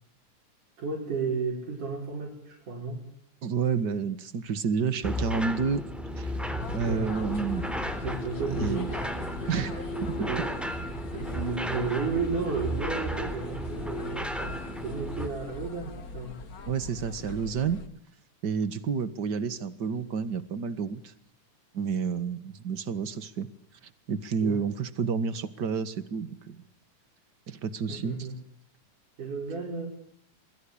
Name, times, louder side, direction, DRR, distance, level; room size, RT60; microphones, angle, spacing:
voice 1, 0.8-3.0 6.9-7.0 8.0-9.2 9.9-16.4 24.4-24.6 27.9-28.3 29.2-29.9, right 4 dB, 70° right, -1 dB, 7.2 m, -33 dB
voice 2, 3.4-5.8 6.2-6.3 6.7-7.8 8.6-8.9 9.5-9.9 16.7-17.8 18.4-21.1 21.7-23.5 24.1-26.6 27.5-28.2, right 6 dB, 40° right, 14 dB, 1.8 m, -30 dB
sound 1, 5.0-15.3, equal, ahead, 2.9 m, -34 dB
sound 2, 6.6-17.9, left 3 dB, 40° left, 1.3 m, -41 dB
28.5 x 22.0 x 8.7 m, 0.67 s
omnidirectional pair, 3.7 m